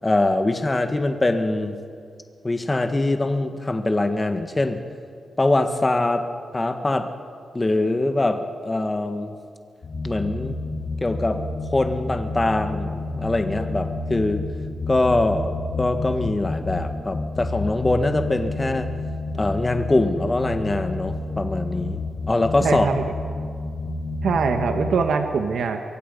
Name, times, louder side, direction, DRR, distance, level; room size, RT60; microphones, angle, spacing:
voice 1, 0.0-1.7 2.4-4.8 5.4-6.3 6.5-7.1 7.5-9.4 10.0-10.6 11.0-11.4 11.7-14.4 14.9-18.9 19.3-22.0 22.3-22.9, left 2 dB, 20° left, 7 dB, 1.5 m, -23 dB
sound 1, 9.8-25.0, left 2 dB, 45° left, 4.3 m, -30 dB
voice 2, 22.6-23.0 24.2-25.8, right 5 dB, 75° right, 5 dB, 1.3 m, -22 dB
24.0 x 23.5 x 5.4 m, 2.2 s
wide cardioid pair, 135°, 0 cm